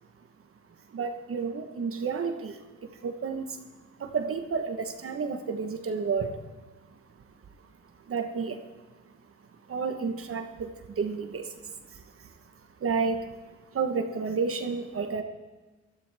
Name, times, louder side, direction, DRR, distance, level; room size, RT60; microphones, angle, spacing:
voice 1, 0.9-3.6 4.0-6.4 7.6-7.7 8.1-8.6 9.7-12.3 12.8-15.2, right 5 dB, 45° right, 6 dB, 1.2 m, -31 dB
17.5 x 13.0 x 3.5 m, 1.2 s
cardioid pair, 90°, 30 cm